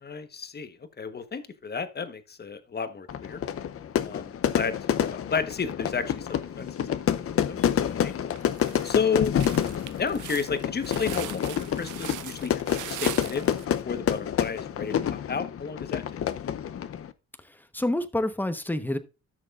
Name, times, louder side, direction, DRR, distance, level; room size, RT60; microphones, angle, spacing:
voice 1, 0.0-3.4 4.0-7.6 8.0-8.1 8.8-9.3 10.0-13.5 13.8-16.0, left 6 dB, 35° left, 1.2 m, -32 dB
Fire / Fireworks, 3.1-17.1, left 9 dB, 50° left, 0.7 m, -28 dB
sound 1, 6.8-7.3 7.8-7.9 8.4-13.7, right 14 dB, 85° right, 0.7 m, -41 dB
voice 2, 17.4-19.0, left 1 dB, 5° left, 1.1 m, -28 dB
13.5 x 6.4 x 2.5 m
cardioid pair, 90°, 30 cm